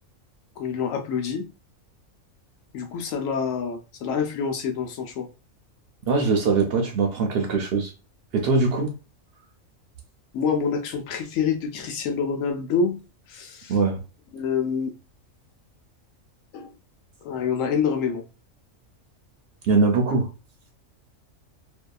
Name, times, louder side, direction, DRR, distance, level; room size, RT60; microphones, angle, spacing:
voice 1, 0.6-1.5 2.7-5.3 10.3-13.0 13.3-13.7 14.3-15.0 16.5-16.7 17.2-18.2, left 6 dB, 80° left, 1.0 m, -27 dB
voice 2, 6.1-7.9 8.3-9.0 13.7-14.0 19.6-20.3, right 4 dB, 60° right, 0.6 m, -22 dB
2.6 x 2.2 x 2.2 m
omnidirectional pair, 1.4 m